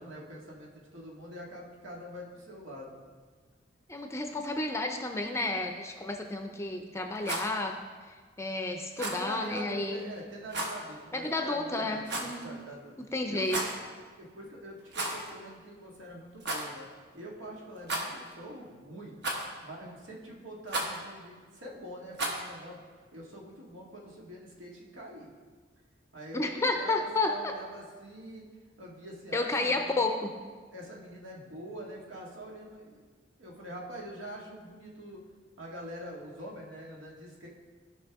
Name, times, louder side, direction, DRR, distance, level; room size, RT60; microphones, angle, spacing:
voice 1, 0.0-3.0 9.0-13.0 13.3-13.7 14.2-16.9 17.1-19.2 19.6-22.8 23.1-25.3 26.1-28.5 28.8-30.0 30.7-33.0 33.4-35.2 35.6-37.5, equal, 90° right, -3 dB, 1.9 m, -44 dB
voice 2, 3.9-7.8 8.4-10.1 11.1-12.5 13.1-13.6 26.3-27.5 29.3-30.3, left 2 dB, 15° left, 4 dB, 0.5 m, -31 dB
Rattle, 7.1-7.5 8.9-9.2 10.5-10.8 12.0-12.4 13.4-13.8 14.9-15.3 15.6-15.7 16.4-16.7 17.8-18.3 19.2-19.6 20.7-21.0 22.1-22.5, right 1 dB, 60° right, 1.3 m, -33 dB
15.0 x 5.5 x 3.5 m, 1.5 s
head